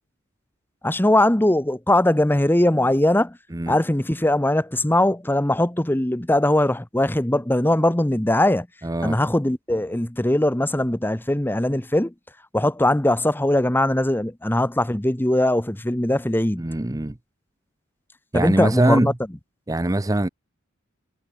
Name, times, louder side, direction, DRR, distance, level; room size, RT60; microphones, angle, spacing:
voice 1, 0.8-3.4 3.7-8.7 9.0-12.1 12.5-16.6 18.3-19.1, left 1 dB, 10° left, 0.9 m, -20 dB
voice 2, 8.8-9.2 16.6-17.1 18.3-19.1 19.7-20.3, right 1 dB, 15° right, 0.7 m, -22 dB
head